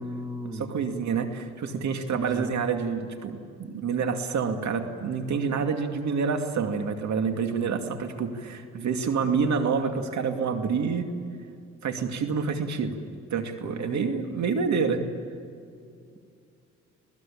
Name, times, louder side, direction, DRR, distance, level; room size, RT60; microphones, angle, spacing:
voice 1, 0.0-0.7 2.1-2.5 13.6-15.1, equal, 10° right, 5 dB, 2.6 m, -37 dB
voice 2, 0.5-11.1 11.8-13.0 13.3-15.0, right 5 dB, 65° right, 5 dB, 2.4 m, -28 dB
27.5 x 19.5 x 8.7 m, 2.4 s
cardioid pair, 90°, 30 cm